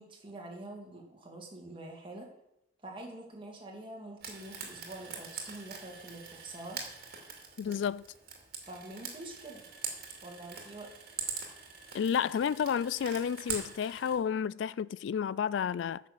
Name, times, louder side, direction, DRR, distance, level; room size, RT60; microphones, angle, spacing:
voice 1, 0.0-2.3 2.8-6.8 7.7-7.8 8.6-9.6 10.2-10.9, right 2 dB, 25° right, 2.2 m, -46 dB
Frying (food), 4.2-14.2, right 6 dB, 50° right, 2.3 m, -43 dB
voice 2, 7.6-8.0 11.9-16.0, left 7 dB, 70° left, 0.3 m, -31 dB
9.9 x 6.3 x 7.2 m
head